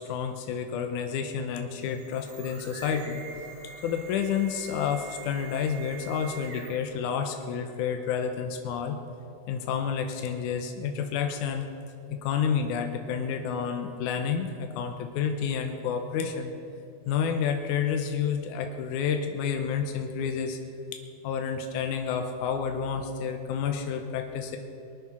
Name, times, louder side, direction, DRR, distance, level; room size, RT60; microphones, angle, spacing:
voice 1, 0.0-3.2 3.8-9.0 9.5-11.7 12.1-16.5 17.1-20.6 21.2-24.6, left 7 dB, 80° left, 5 dB, 2.3 m, -30 dB
sound 1, 1.7-7.0, right 5 dB, 45° right, 3.2 m, -45 dB
22.5 x 9.5 x 6.1 m, 2.7 s
omnidirectional pair, 3.6 m